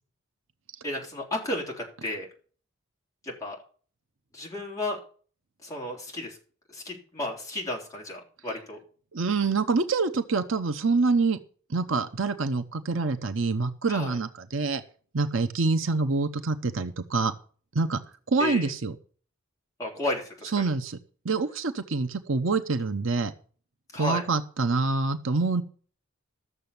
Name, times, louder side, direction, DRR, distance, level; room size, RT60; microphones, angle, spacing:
voice 1, 0.8-2.3 3.2-3.6 4.3-5.0 5.6-6.4 6.7-8.8 13.9-14.2 18.4-18.7 19.8-20.5 23.9-24.2, left 1 dB, 15° left, -2 dB, 3.6 m, -33 dB
voice 2, 9.1-11.4 11.7-14.8 15.1-17.3 17.7-18.0 18.3-18.9 20.5-21.0 21.2-23.3 24.0-25.6, right 3 dB, 65° right, 8 dB, 0.9 m, -26 dB
13.5 x 7.0 x 7.0 m, 0.43 s
head